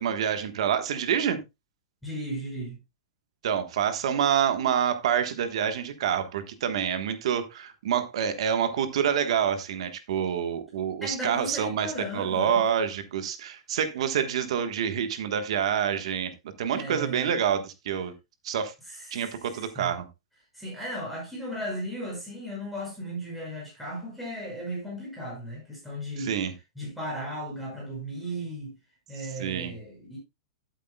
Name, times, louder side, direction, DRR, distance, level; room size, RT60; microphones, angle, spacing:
voice 1, 0.0-1.4 3.4-11.9 12.1-16.3 16.6-18.1 18.4-18.7 19.1-20.1 26.2-26.5 29.4-29.7, right 8 dB, 65° right, 1.3 m, -27 dB
voice 2, 2.0-2.8 11.0-12.7 16.7-17.3 18.9-19.9 20.5-26.3 26.8-28.7 29.1-30.2, equal, ahead, 6.0 m, -36 dB
12.0 x 8.2 x 2.3 m
supercardioid pair, 165°, 3 cm